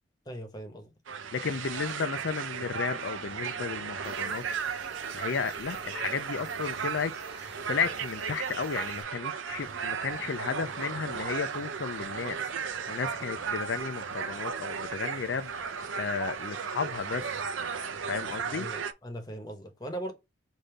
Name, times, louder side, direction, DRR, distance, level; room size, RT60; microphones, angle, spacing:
voice 1, 0.3-0.9 13.2-13.3 18.6-20.1, right 1 dB, 20° left, 1.0 m, -39 dB
sound 1, 1.1-18.9, right 6 dB, 85° right, 0.6 m, -35 dB
voice 2, 1.3-4.4 5.1-17.4 18.1-18.7, left 5 dB, 70° left, 0.4 m, -34 dB
sound 2, 4.0-9.0, right 3 dB, 60° right, 1.6 m, -48 dB
Thunder / Rain, 9.5-17.3, right 1 dB, 15° right, 0.8 m, -55 dB
5.2 x 2.7 x 3.2 m
head